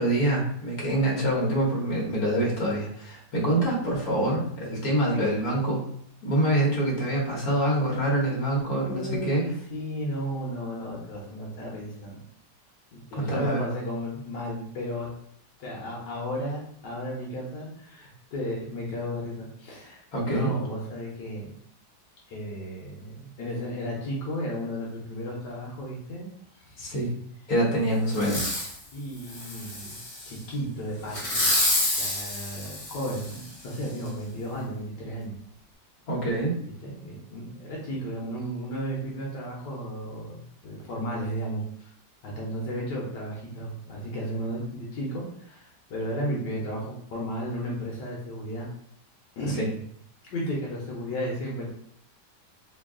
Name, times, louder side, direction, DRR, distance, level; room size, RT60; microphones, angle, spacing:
voice 1, 0.0-5.8 6.2-9.5 13.1-13.6 20.1-20.5 26.8-27.1 27.5-28.5 36.1-36.5 49.6-49.7, right 1 dB, 60° left, -4 dB, 1.6 m, -25 dB
voice 2, 8.9-12.2 12.9-15.1 15.6-21.5 22.3-26.3 26.6-27.0 28.9-30.0 30.2-31.4 32.0-35.3 36.8-41.9 42.2-48.7 49.4-49.7 50.3-51.7, equal, 85° left, -3 dB, 1.5 m, -34 dB
Fireworks, 28.1-28.8 29.3-30.3 31.1-33.5 34.1-34.2, left 1 dB, 30° left, 0.7 m, -28 dB
3.5 x 2.3 x 3.6 m, 0.66 s
omnidirectional pair, 1.8 m